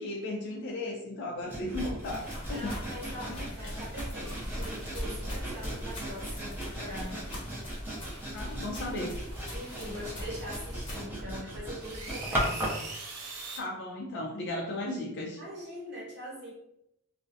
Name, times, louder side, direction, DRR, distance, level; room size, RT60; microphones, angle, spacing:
voice 1, 0.0-2.8 3.3-3.4 8.3-9.1 13.6-15.4, left 1 dB, 55° left, -2 dB, 0.4 m, -35 dB
Sawing, 1.5-12.9, right 1 dB, 10° right, 0.5 m, -38 dB
sound 1, 2.0-11.0, equal, 25° left, 0.7 m, -40 dB
voice 2, 2.5-7.3 8.0-8.3 9.5-12.8 15.4-16.5, equal, 50° right, -4 dB, 0.8 m, -42 dB
sound 2, 4.2-5.8 7.0-7.6 8.0-8.9 9.3-11.0 11.8-13.6, right 3 dB, 80° right, 0.6 m, -45 dB
2.4 x 2.0 x 2.6 m, 0.82 s
head